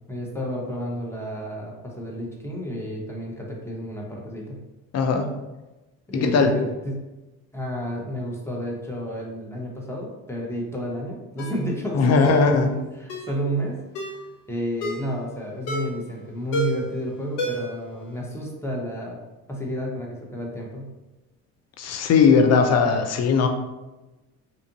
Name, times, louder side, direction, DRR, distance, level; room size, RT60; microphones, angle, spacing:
voice 1, 0.1-4.6 6.1-7.0 7.5-14.2 14.5-19.2 19.5-20.9, equal, 5° left, -2 dB, 0.8 m, -31 dB
voice 2, 4.9-5.3 6.1-6.5 11.9-12.7 21.8-23.5, left 5 dB, 40° left, 6 dB, 0.5 m, -18 dB
Ringtone, 11.4-11.6 12.2-12.5 13.1-13.3 13.9-14.2 14.8-15.1 15.7-16.0 16.5-16.9 17.4-17.8 18.1-18.2, equal, 70° left, 0.7 m, -30 dB
2.7 x 2.4 x 2.7 m, 1.1 s
hypercardioid pair, 60°, 41 cm